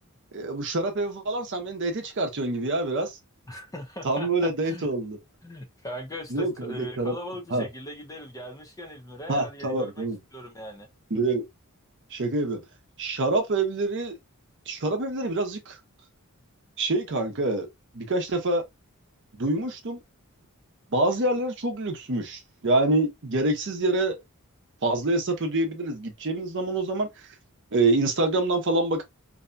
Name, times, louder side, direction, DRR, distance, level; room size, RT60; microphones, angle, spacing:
voice 1, 0.3-3.2 4.0-5.2 6.3-7.2 7.5-7.6 9.3-10.2 11.1-11.4 12.1-12.6 13.0-14.1 14.7-15.8 16.8-17.7 17.9-18.6 19.4-20.0 20.9-24.2 24.8-27.1 27.7-29.0, right 2 dB, 55° right, 0.7 m, -26 dB
voice 2, 3.5-4.9 5.4-10.1 10.3-10.9, equal, 15° left, 0.5 m, -39 dB
2.7 x 2.2 x 2.5 m
head